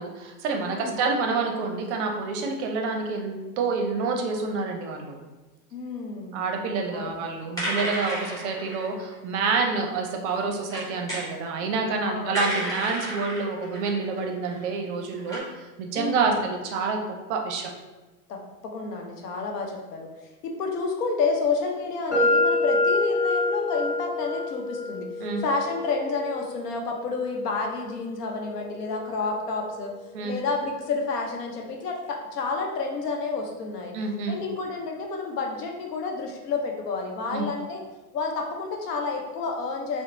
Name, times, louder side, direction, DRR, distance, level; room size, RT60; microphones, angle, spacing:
voice 1, 0.0-5.3 6.3-17.7 25.2-25.4 30.1-30.3 33.9-34.4 37.3-37.5, right 4 dB, 50° right, 3 dB, 0.5 m, -28 dB
voice 2, 0.6-1.0 5.7-6.4 6.9-7.2 12.0-12.4 15.9-16.4 18.3-20.1 20.4-29.9 30.2-33.9 34.3-37.8 38.1-40.0, left 4 dB, 85° left, 2 dB, 0.7 m, -30 dB
sound 1, 7.3-7.4 7.6-9.1 9.9-10.1 10.3-11.3 12.3-14.6 15.2-15.4, right 1 dB, 10° left, 0.7 m, -32 dB
sound 2, 22.1-30.0, left 2 dB, 50° left, 1.4 m, -28 dB
2.9 x 2.0 x 2.5 m, 1.2 s
hypercardioid pair, 120°, 46 cm